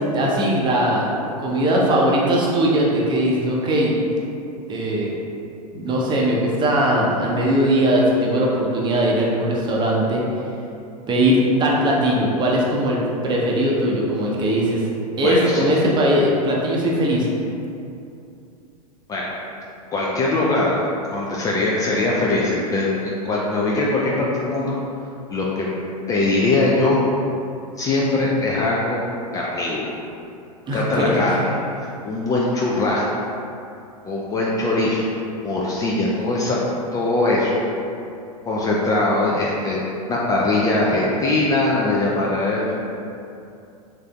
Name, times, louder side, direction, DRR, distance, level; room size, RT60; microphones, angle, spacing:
voice 1, 0.1-1.1 1.4-3.9 4.7-5.1 5.7-10.2 11.1-14.8 15.2-17.3 30.7-31.3, right 1 dB, 25° right, -3 dB, 0.6 m, -20 dB
voice 2, 15.2-15.6 19.1-19.2 19.9-20.7 21.1-24.7 25.3-25.7 26.1-27.0 27.8-29.0 29.3-29.9 30.7-31.4 31.8-33.0 34.0-35.1 35.4-36.6 36.9-37.6 38.4-39.8 40.1-42.7, left 2 dB, 20° left, -5 dB, 0.3 m, -21 dB
3.7 x 3.3 x 2.3 m, 2.6 s
figure-of-eight pair, 95°, 19 cm